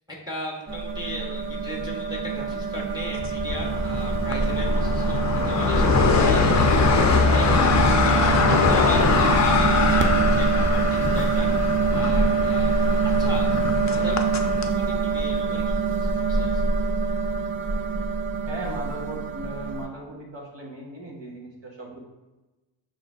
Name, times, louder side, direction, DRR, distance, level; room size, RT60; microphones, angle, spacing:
voice 1, 0.1-11.5 11.9-12.8 13.0-13.5 13.8-16.6, equal, 10° right, -1 dB, 0.9 m, -37 dB
sound 1, 0.7-19.9, right 4 dB, 30° right, 0.4 m, -24 dB
sound 2, 3.2-14.7, left 4 dB, 35° left, 0.5 m, -22 dB
voice 2, 18.5-22.0, right 1 dB, 60° right, -2 dB, 1.4 m, -37 dB
5.2 x 3.7 x 2.4 m, 1.1 s
cardioid pair, 55°, 49 cm